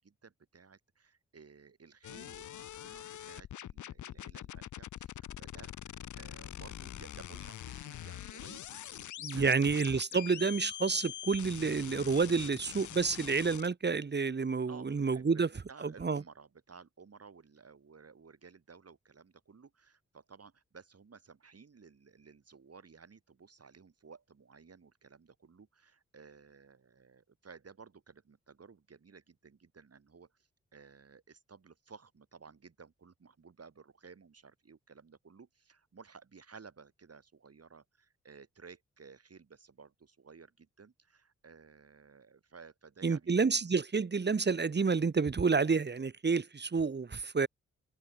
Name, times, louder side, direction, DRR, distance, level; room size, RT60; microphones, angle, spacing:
voice 1, 0.0-5.7 6.2-10.2 14.7-43.3, right 5 dB, 55° right, 7.4 m, -56 dB
sound 1, 2.0-13.7, left 11 dB, 80° left, 1.4 m, -44 dB
voice 2, 9.2-15.5 16.0-16.2 43.0-47.5, right 4 dB, 35° right, 1.2 m, -29 dB
supercardioid pair, 40°, 30 cm